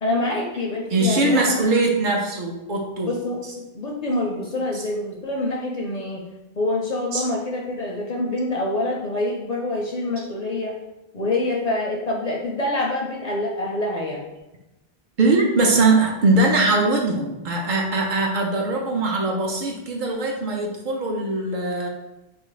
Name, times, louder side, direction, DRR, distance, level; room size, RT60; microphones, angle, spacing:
voice 1, 0.0-1.6 3.0-6.2 6.6-10.8 11.1-14.3, left 2 dB, 55° left, -2 dB, 0.5 m, -26 dB
voice 2, 0.9-3.6 4.7-4.8 7.1-7.2 15.2-21.9, right 2 dB, 60° right, 0 dB, 0.6 m, -21 dB
3.0 x 2.5 x 3.9 m, 0.97 s
omnidirectional pair, 1.0 m